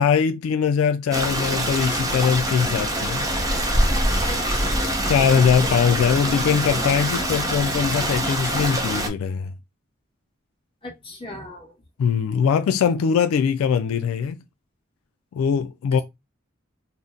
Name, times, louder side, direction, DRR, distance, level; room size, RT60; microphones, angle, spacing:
voice 1, 0.0-3.3 5.1-9.5 12.0-14.4 15.3-16.0, left 7 dB, 90° left, 0.3 m, -21 dB
Stream, 1.1-9.1, right 1 dB, 15° right, 0.6 m, -24 dB
voice 2, 4.3-5.1 10.8-11.7, left 1 dB, 25° left, 1.2 m, -38 dB
2.7 x 2.1 x 3.6 m
head